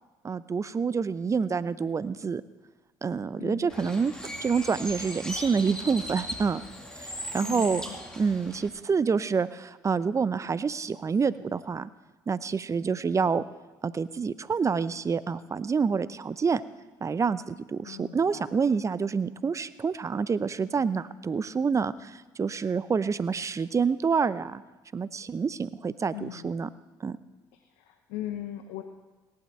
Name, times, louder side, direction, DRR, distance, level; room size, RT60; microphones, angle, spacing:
voice 1, 0.2-2.4 3.0-4.1 4.4-6.6 7.0-7.8 8.2-11.9 12.3-13.4 13.8-16.6 17.0-24.6 24.9-26.7 27.0-27.2, right 5 dB, 30° right, 16 dB, 0.7 m, -27 dB
voice 2, 3.4-4.1 7.4-8.0 17.8-18.5 26.1-26.5 27.5-28.8, left 12 dB, 75° left, 7 dB, 0.9 m, -40 dB
Bird, 3.7-8.7, equal, 5° left, 2.6 m, -38 dB
18.0 x 11.5 x 4.5 m, 1.2 s
hypercardioid pair, 60°, 10 cm